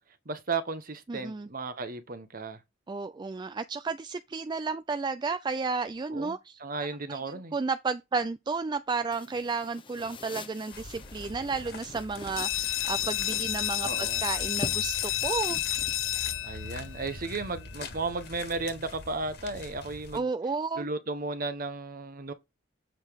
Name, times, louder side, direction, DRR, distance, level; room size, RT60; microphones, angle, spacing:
voice 1, 0.2-2.6 6.1-7.5 13.8-14.2 16.4-20.3 20.8-22.3, right 3 dB, 45° right, 1.1 m, -34 dB
voice 2, 1.1-1.5 2.9-6.6 7.1-7.2 7.5-15.6 20.1-20.9, right 4 dB, 20° right, 0.3 m, -32 dB
sound 1, 9.1-17.2, left 2 dB, 25° left, 0.7 m, -46 dB
sound 2, 10.7-20.2, left 3 dB, 60° left, 1.8 m, -44 dB
sound 3, 12.4-17.8, left 13 dB, 85° left, 0.5 m, -31 dB
7.5 x 4.9 x 3.6 m
head